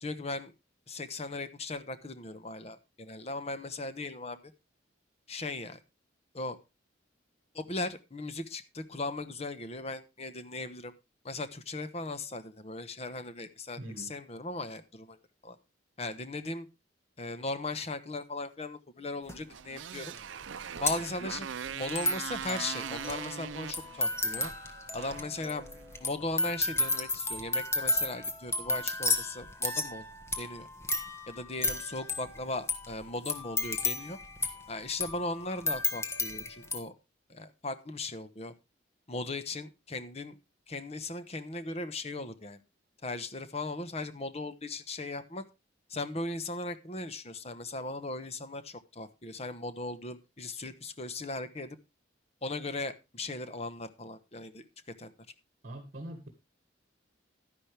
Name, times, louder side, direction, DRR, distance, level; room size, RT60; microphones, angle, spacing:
voice 1, 0.0-0.5 0.9-4.5 5.3-5.8 6.3-6.6 7.5-10.9 11.2-15.2 15.4-15.6 16.0-16.7 17.2-20.1 20.8-24.5 24.9-25.6 26.0-30.1 30.4-30.7 31.3-34.2 34.7-36.9 37.3-38.5 39.1-40.4 40.7-42.6 43.0-45.4 45.9-51.8 52.4-54.6 55.0-55.1, left 2 dB, 35° left, 11 dB, 1.1 m, -38 dB
voice 2, 13.8-14.1 55.6-56.3, right 1 dB, 45° right, 5 dB, 1.9 m, -42 dB
sound 1, 19.3-19.4 20.2-20.3 20.4-36.8, left 2 dB, 15° left, 1.4 m, -33 dB
Motorcycle, 19.5-26.0, right 7 dB, 75° right, 0.5 m, -41 dB
12.0 x 10.5 x 3.4 m, 0.25 s
head